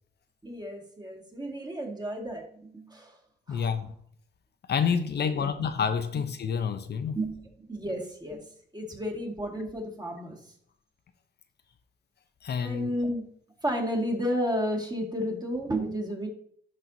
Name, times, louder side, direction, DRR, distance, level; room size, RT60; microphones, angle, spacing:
voice 1, 0.4-3.2 3.5-3.7 5.2-5.7 6.1-6.2 7.1-8.5 8.7-10.5 12.6-13.3 13.6-16.3, equal, 20° right, 2.0 m, -32 dB
voice 2, 3.5-3.9 4.7-7.2 12.4-12.9, left 6 dB, 55° left, 0.7 m, -28 dB
11.5 x 4.5 x 2.7 m
cardioid pair, 95°, 20 cm